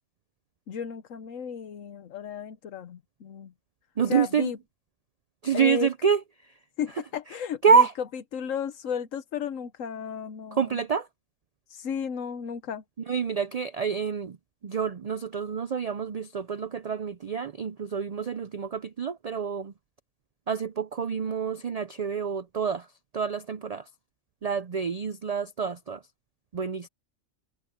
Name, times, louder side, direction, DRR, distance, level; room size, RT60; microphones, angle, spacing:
voice 1, 0.7-3.5 4.1-4.6 5.5-5.9 6.8-7.8 8.3-10.8 11.7-12.8, left 7 dB, 85° left, 1.3 m, -34 dB
voice 2, 4.0-4.5 5.4-6.2 7.6-7.9 10.5-11.1 13.1-14.4 14.6-19.7 20.5-22.9 23.1-23.9 24.4-26.0 26.5-26.9, right 6 dB, 65° right, 0.3 m, -27 dB
omnidirectional pair, 1.3 m